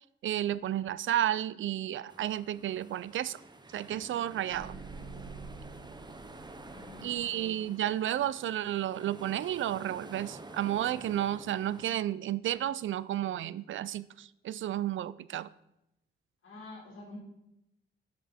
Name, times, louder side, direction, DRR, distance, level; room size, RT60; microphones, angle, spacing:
voice 1, 0.2-3.4 3.7-4.8 7.0-15.5, right 12 dB, 65° right, 18 dB, 0.4 m, -32 dB
sound 1, 2.1-11.9, right 2 dB, 20° right, 0.8 m, -50 dB
sound 2, 4.5-7.6, right 4 dB, 85° right, 1.7 m, -47 dB
voice 2, 6.6-7.6 16.4-17.2, left 2 dB, 70° left, -3 dB, 3.4 m, -48 dB
10.5 x 6.2 x 4.3 m, 0.87 s
cardioid pair, 90°, 21 cm